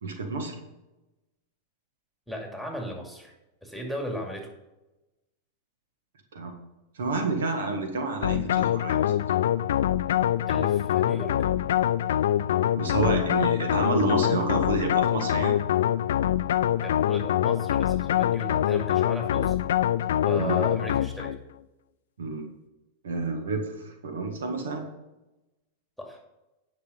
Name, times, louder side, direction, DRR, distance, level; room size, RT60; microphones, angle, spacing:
voice 1, 0.0-0.5 6.3-6.6 6.9-9.2 12.8-15.6 20.2-20.7 22.2-22.5 23.0-24.9, right 3 dB, 75° right, 4 dB, 1.6 m, -29 dB
voice 2, 2.3-3.3 3.6-4.5 10.5-11.5 16.8-19.6 20.2-21.4 26.0-26.2, equal, ahead, 1 dB, 2.4 m, -36 dB
sound 1, 8.2-21.4, left 11 dB, 70° left, 0.3 m, -24 dB
10.0 x 6.0 x 5.4 m, 0.99 s
hypercardioid pair, 95°, 0 cm